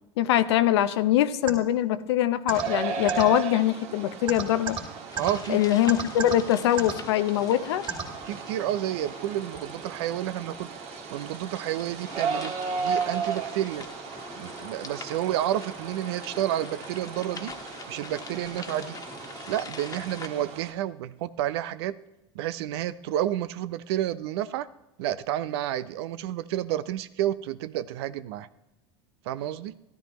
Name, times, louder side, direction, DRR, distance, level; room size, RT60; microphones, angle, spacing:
voice 1, 0.2-4.8 5.5-7.8, left 12 dB, 80° left, 12 dB, 0.7 m, -23 dB
sound 1, 1.5-1.6 2.5-2.6 3.1-3.2 4.3-4.8 5.2-5.3 5.9-6.3 6.8-6.9 7.9-8.0, right 6 dB, 35° right, 2.9 m, -29 dB
sound 2, 2.5-20.7, right 6 dB, 50° right, 1.6 m, -36 dB
sound 3, 5.1-20.3, left 4 dB, 25° left, 1.5 m, -44 dB
voice 2, 5.2-5.6 8.2-10.7 11.1-13.9 14.4-17.6 17.9-19.0 19.5-22.0 22.3-24.7 25.0-28.5 29.3-29.8, right 12 dB, 75° right, 15 dB, 0.6 m, -30 dB
13.5 x 13.0 x 3.1 m, 0.93 s
hypercardioid pair, 95°, 14 cm